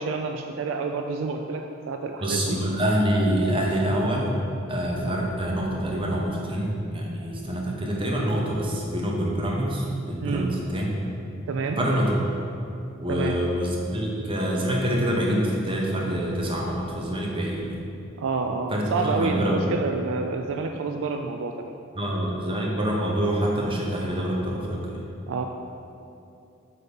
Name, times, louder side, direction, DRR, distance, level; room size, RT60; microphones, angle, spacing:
voice 1, 0.0-2.6 5.0-5.2 10.2-10.6 11.5-11.8 13.1-13.4 18.2-22.1 25.3-25.4, right 4 dB, 65° right, 5 dB, 0.3 m, -29 dB
voice 2, 2.2-4.4 4.7-10.9 11.8-12.2 13.0-17.8 18.7-19.6 22.0-25.0, equal, 25° right, -2 dB, 0.8 m, -26 dB
7.8 x 2.9 x 5.2 m, 2.7 s
head